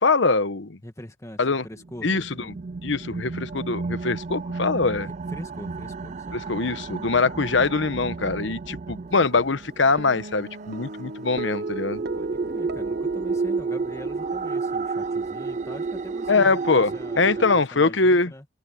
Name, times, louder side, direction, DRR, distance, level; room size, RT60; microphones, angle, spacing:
voice 1, 0.0-0.8 1.4-1.6 2.0-2.3 2.8-5.1 6.3-12.0 16.3-18.3, left 3 dB, 70° left, 1.0 m, -23 dB
voice 2, 0.8-2.5 5.0-6.3 12.1-18.5, left 1 dB, 15° left, 1.8 m, -43 dB
sound 1, 1.8-17.6, right 4 dB, 40° right, 0.4 m, -32 dB
Guitar, 10.0-16.5, right 2 dB, 55° right, 0.9 m, -37 dB
head